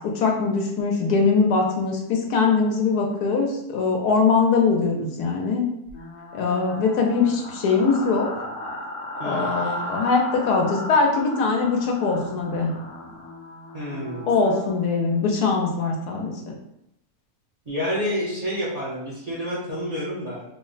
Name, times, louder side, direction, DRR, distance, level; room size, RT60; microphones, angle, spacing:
voice 1, 0.0-5.6 6.3-8.3 9.2-12.7 14.3-16.5, left 4 dB, 80° left, 2 dB, 1.2 m, -22 dB
sound 1, 5.9-14.8, left 1 dB, 65° left, 1.0 m, -35 dB
voice 2, 13.7-14.3 17.7-20.4, equal, 35° right, -7 dB, 0.6 m, -29 dB
3.3 x 2.1 x 3.9 m, 0.81 s
omnidirectional pair, 1.6 m